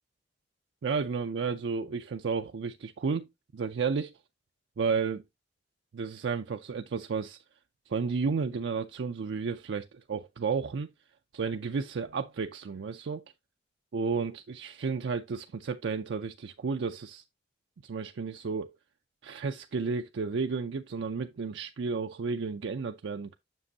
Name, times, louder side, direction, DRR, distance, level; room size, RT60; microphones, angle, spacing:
voice 1, 0.8-3.3 3.5-4.1 4.8-5.2 5.9-7.4 7.9-10.9 11.3-13.2 13.9-17.2 17.8-18.7 19.2-23.3, right 5 dB, 85° right, 0.4 m, -32 dB
7.5 x 6.0 x 2.7 m
head